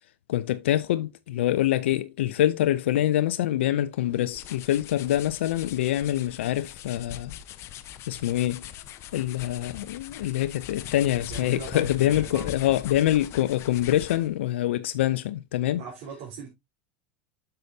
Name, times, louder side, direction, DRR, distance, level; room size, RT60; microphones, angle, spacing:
voice 1, 0.3-7.3 8.1-8.6 9.1-15.8, left 13 dB, 85° left, 0.5 m, -25 dB
sound 1, 4.0-14.4, left 11 dB, 45° left, 0.8 m, -41 dB
voice 2, 11.3-12.5 15.6-16.5, right 6 dB, 65° right, 3.7 m, -40 dB
8.0 x 6.8 x 2.7 m
supercardioid pair, 115°, 6 cm